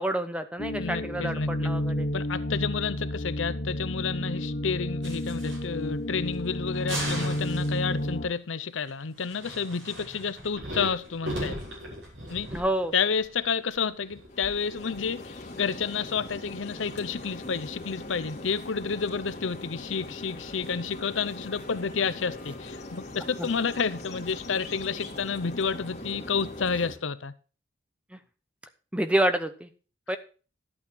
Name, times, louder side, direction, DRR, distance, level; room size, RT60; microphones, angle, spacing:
voice 1, 0.0-2.1 12.5-12.9 23.4-23.5 28.1-28.2 28.9-29.7 30.1-30.2, right 1 dB, 5° right, 0.8 m, -28 dB
sound 1, 0.6-8.3, left 1 dB, 50° left, 1.3 m, -31 dB
voice 2, 0.8-1.7 2.1-11.6 12.3-12.5 12.9-27.3, left 5 dB, 80° left, 0.7 m, -30 dB
sound 2, 5.0-5.9 6.2-6.3 6.7-8.0 9.2-14.3, equal, 65° right, 6.0 m, -37 dB
sound 3, 14.3-26.9, left 2 dB, 35° left, 2.3 m, -41 dB
11.5 x 8.7 x 4.6 m
head